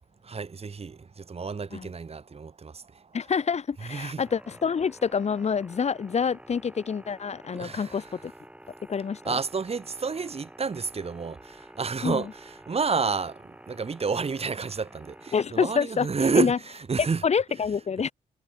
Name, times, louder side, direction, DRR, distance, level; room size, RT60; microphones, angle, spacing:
voice 1, 0.2-3.0 3.8-4.2 7.5-8.1 9.2-17.2, right 5 dB, 40° right, 2.6 m, -30 dB
voice 2, 3.1-8.3 8.9-9.4 12.0-12.2 15.3-16.1 16.4-16.6 17.2-18.1, left 6 dB, 45° left, 0.9 m, -27 dB
sound 1, 4.2-15.5, right 1 dB, 10° right, 6.6 m, -49 dB
cardioid pair, 85°, 15 cm